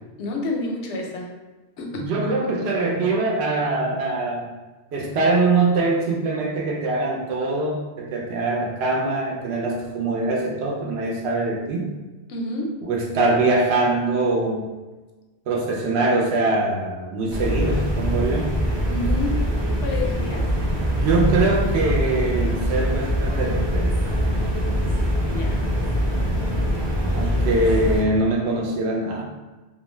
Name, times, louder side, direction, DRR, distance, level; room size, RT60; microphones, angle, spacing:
voice 1, 0.2-1.3 1.8-2.1 12.3-12.7 18.9-19.4 19.8-20.5 25.2-25.6, left 2 dB, 90° left, 0 dB, 0.9 m, -29 dB
voice 2, 2.0-4.5 4.9-11.9 12.8-14.7 15.5-18.6 20.9-23.9 27.1-29.2, right 2 dB, 75° right, 0 dB, 0.8 m, -23 dB
sound 1, 17.3-28.0, equal, 45° right, 0.3 m, -23 dB
2.4 x 2.2 x 3.1 m, 1.2 s
omnidirectional pair, 1.1 m